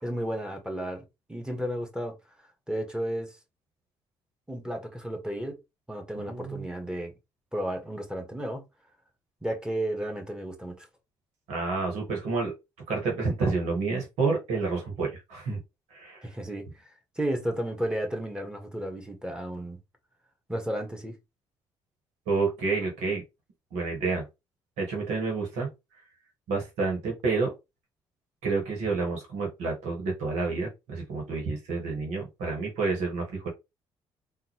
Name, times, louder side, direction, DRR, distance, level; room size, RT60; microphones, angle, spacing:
voice 1, 0.0-2.2 2.7-3.4 4.5-5.6 5.9-7.1 7.5-8.6 9.4-10.9 16.2-16.9 17.1-19.8 20.5-21.2, right 1 dB, 5° right, 1.6 m, -33 dB
voice 2, 6.1-6.6 11.5-12.5 12.9-15.6 15.9-16.3 22.3-23.2 23.7-24.2 24.8-25.7 26.5-27.5 28.4-33.5, right 4 dB, 80° right, 1.5 m, -29 dB
3.7 x 2.7 x 3.1 m
supercardioid pair, 55°, 11 cm